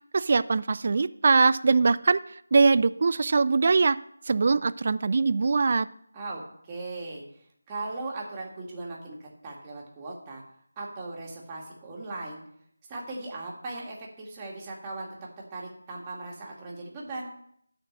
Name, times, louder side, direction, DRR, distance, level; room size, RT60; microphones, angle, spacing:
voice 1, 0.1-2.2 2.5-4.0 4.3-5.9, right 4 dB, 40° right, 15 dB, 0.4 m, -22 dB
voice 2, 6.1-7.2 7.7-10.4 10.8-12.4 12.9-15.1 15.5-17.3, right 2 dB, 15° right, -3 dB, 2.1 m, -38 dB
12.0 x 4.5 x 7.4 m, 0.68 s
figure-of-eight pair, 165°, 0 cm